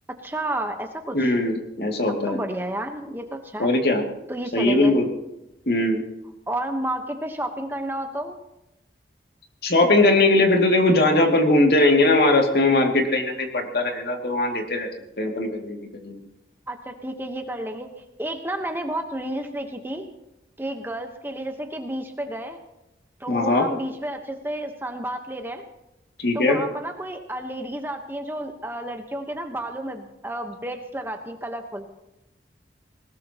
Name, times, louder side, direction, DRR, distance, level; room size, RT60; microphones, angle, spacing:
voice 1, 0.2-1.4 2.3-3.7 4.3-5.0 6.5-8.4 16.7-17.9 18.2-20.1 20.6-22.6 23.2-25.6 26.3-31.9, right 1 dB, 10° right, 5 dB, 1.1 m, -31 dB
voice 2, 1.1-2.4 3.6-4.0 4.5-5.1 5.7-6.0 9.6-14.9 15.2-15.8 16.0-16.2 23.3-23.7 26.2-26.6, left 2 dB, 60° left, 2 dB, 2.4 m, -20 dB
20.5 x 19.0 x 3.0 m, 0.91 s
head